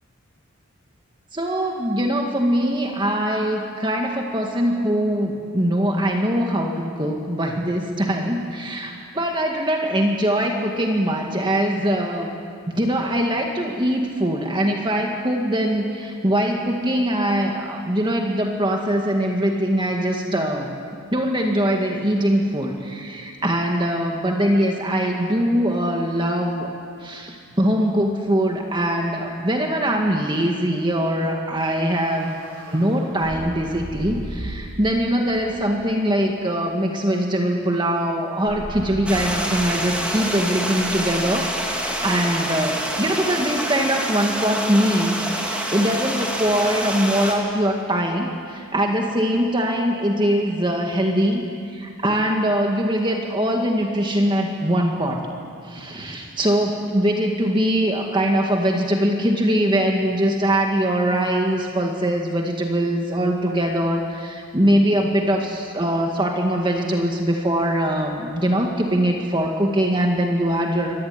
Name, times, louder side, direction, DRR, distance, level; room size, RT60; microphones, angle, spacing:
voice 1, 1.3-12.3 12.8-20.7 21.1-26.7 27.0-32.4 32.7-51.5 51.7-55.3 55.6-70.9, equal, 20° right, 1 dB, 2.0 m, -22 dB
sound 1, 31.6-34.9 35.3-35.9 38.5-42.6, equal, 75° right, 5.3 m, -38 dB
Stream, 39.1-47.4, right 1 dB, 5° right, 2.8 m, -27 dB
24.5 x 18.5 x 9.7 m, 2.3 s
head